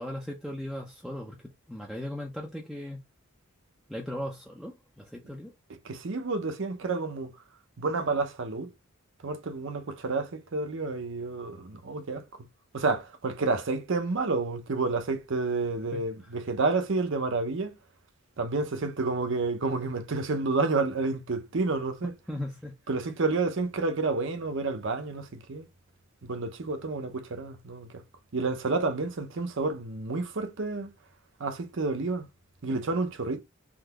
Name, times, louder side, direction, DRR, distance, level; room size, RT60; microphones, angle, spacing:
voice 1, 0.0-3.0 3.9-5.5 15.9-16.0 22.3-22.7, left 1 dB, ahead, 0.5 m, -37 dB
voice 2, 5.8-7.3 7.8-8.7 9.2-12.2 12.7-17.7 18.4-22.1 22.9-25.7 26.2-28.0 28.3-30.9 31.4-32.3 32.6-33.4, right 3 dB, 60° right, 0.6 m, -30 dB
3.7 x 2.7 x 2.3 m
head